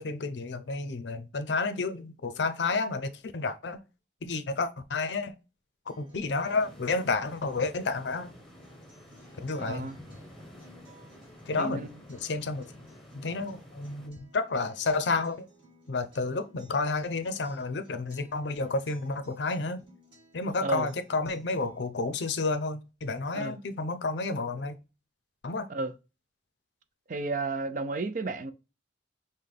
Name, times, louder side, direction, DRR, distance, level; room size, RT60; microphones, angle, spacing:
voice 1, 0.0-3.8 4.2-5.3 6.0-8.3 9.4-9.9 11.5-11.9 12.2-12.7 13.1-15.5 15.9-19.8 20.3-24.8 25.4-25.7, left 3 dB, 85° left, 0.6 m, -31 dB
Acoustic guitar, 5.9-21.9, right 1 dB, 30° right, 2.2 m, -59 dB
sound 1, 6.3-14.1, left 1 dB, ahead, 1.0 m, -51 dB
voice 2, 9.6-10.0 11.6-11.9 20.6-20.9 23.3-23.6 25.7-25.9 27.1-28.5, right 3 dB, 45° right, 0.4 m, -32 dB
5.6 x 2.2 x 3.2 m
head